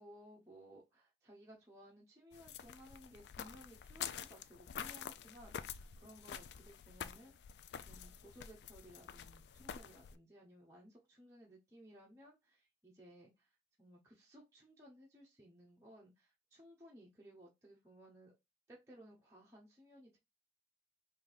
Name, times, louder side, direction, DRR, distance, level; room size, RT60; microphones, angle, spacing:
voice 1, 0.0-7.3 7.9-18.3 18.7-20.2, equal, 15° right, -5 dB, 0.8 m, -59 dB
sound 1, 2.3-10.2, left 8 dB, 75° left, 0.3 m, -48 dB
3.3 x 2.7 x 3.9 m, 0.22 s
head